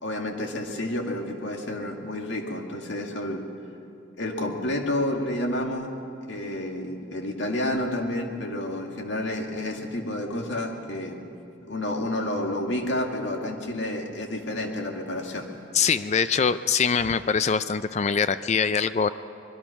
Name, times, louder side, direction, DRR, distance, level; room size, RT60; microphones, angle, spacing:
voice 1, 0.0-3.5 4.2-6.0 6.3-11.2 11.6-15.5, left 1 dB, 70° left, 2 dB, 2.3 m, -30 dB
voice 2, 15.7-19.1, left 6 dB, 35° left, 13 dB, 0.4 m, -23 dB
25.0 x 21.5 x 5.9 m, 2.6 s
head